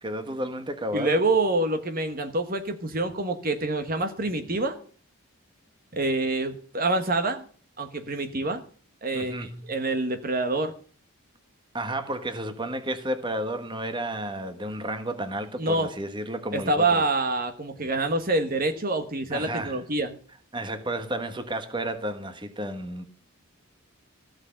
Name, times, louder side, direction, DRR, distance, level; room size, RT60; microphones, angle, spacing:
voice 1, 0.0-1.2 9.1-9.7 11.7-17.1 19.3-19.8 20.5-23.0, right 1 dB, 20° right, 1.3 m, -32 dB
voice 2, 0.9-4.8 5.9-7.4 7.8-8.6 9.0-10.7 15.6-15.9 16.5-20.2, right 2 dB, 40° right, 1.2 m, -26 dB
15.5 x 6.3 x 8.7 m
head